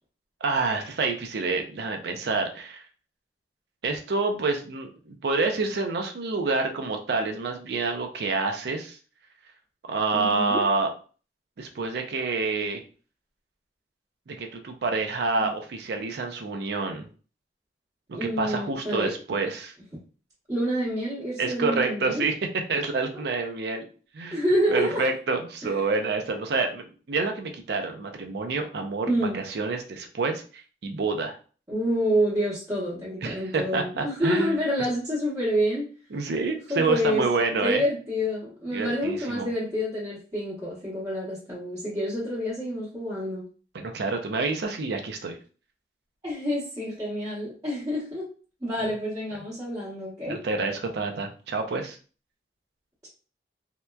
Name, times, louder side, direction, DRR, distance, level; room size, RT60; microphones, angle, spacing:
voice 1, 0.4-2.8 3.8-9.0 9.9-10.9 11.6-12.8 14.3-17.1 18.2-19.7 21.4-22.4 22.7-23.9 24.1-24.4 24.7-31.4 33.2-34.6 36.1-37.8 38.7-39.5 43.7-45.4 50.3-52.0, right 3 dB, 60° right, 4 dB, 0.4 m, -28 dB
voice 2, 10.1-10.6 15.4-15.5 18.1-19.1 20.5-22.2 24.3-25.1 25.6-25.7 29.1-29.4 31.7-35.9 36.7-37.2 37.6-43.4 46.2-48.3 48.6-50.4, equal, 20° right, -11 dB, 0.9 m, -28 dB
2.8 x 2.1 x 2.2 m, 0.39 s
head